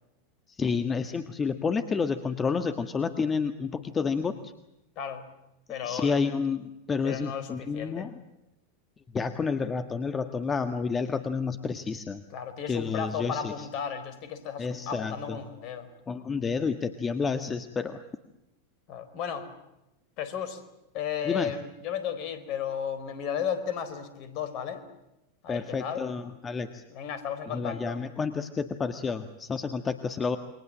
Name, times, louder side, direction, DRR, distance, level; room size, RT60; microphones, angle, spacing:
voice 1, 0.5-4.5 5.8-8.2 9.1-12.2 12.7-13.7 14.6-15.4 16.1-18.0 21.2-21.5 25.5-26.8 27.5-30.4, left 5 dB, 20° left, 9 dB, 1.6 m, -30 dB
voice 2, 5.7-6.2 7.0-8.1 12.3-15.9 18.9-19.5 20.2-20.6 20.9-24.8 25.4-26.1 26.9-28.0, left 8 dB, 45° left, 12 dB, 4.3 m, -34 dB
28.5 x 24.0 x 7.5 m, 0.94 s
figure-of-eight pair, 90°, 0 cm